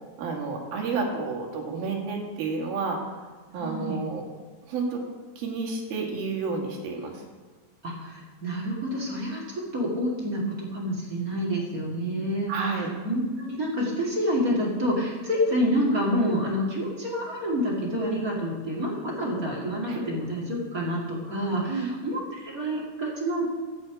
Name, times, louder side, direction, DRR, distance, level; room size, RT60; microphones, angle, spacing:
voice 1, 0.2-3.0 3.5-4.3 4.7-5.0 5.4-7.2 12.5-12.9 19.9-20.0 21.7-21.9, right 4 dB, 75° right, 0 dB, 3.6 m, -30 dB
voice 2, 3.6-4.0 7.8-23.5, equal, 30° right, -4 dB, 2.0 m, -28 dB
12.5 x 6.0 x 8.7 m, 1.4 s
omnidirectional pair, 4.4 m